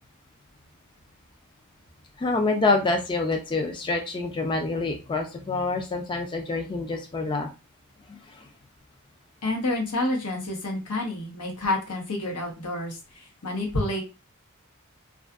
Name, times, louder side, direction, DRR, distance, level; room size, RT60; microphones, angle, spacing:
voice 1, 2.2-7.5 8.1-8.5, left 3 dB, 20° left, 3 dB, 0.3 m, -27 dB
voice 2, 9.4-14.0, left 2 dB, 90° left, 0 dB, 0.9 m, -29 dB
2.5 x 2.4 x 2.3 m, 0.30 s
head